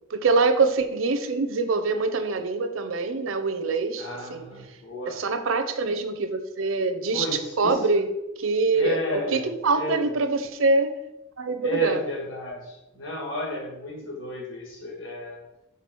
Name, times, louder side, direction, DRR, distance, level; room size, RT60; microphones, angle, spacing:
voice 1, 0.1-4.4 5.1-7.3 7.6-8.1 8.4-10.9 11.4-12.0, right 3 dB, 80° right, 9 dB, 0.7 m, -24 dB
voice 2, 4.0-5.2 7.1-7.8 8.7-9.4 9.7-10.1 11.6-15.4, left 1 dB, 65° left, -2 dB, 1.8 m, -32 dB
6.0 x 3.6 x 6.1 m, 0.93 s
head